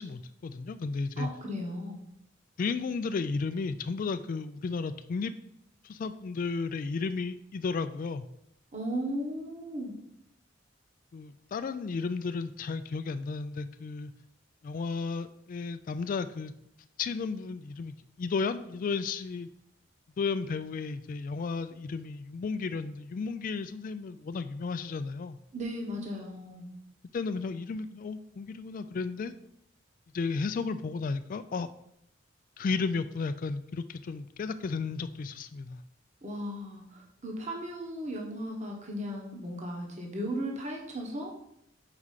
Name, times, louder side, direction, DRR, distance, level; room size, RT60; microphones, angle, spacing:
voice 1, 0.0-1.3 2.6-5.3 5.8-8.2 11.1-14.1 14.6-16.5 17.0-19.5 20.2-25.4 27.1-29.3 30.1-31.7 32.6-35.8, left 4 dB, 45° left, 10 dB, 0.3 m, -33 dB
voice 2, 1.2-2.0 8.7-9.9 25.5-26.7 36.2-41.3, equal, 35° right, -1 dB, 1.2 m, -36 dB
4.9 x 4.8 x 5.7 m, 0.76 s
head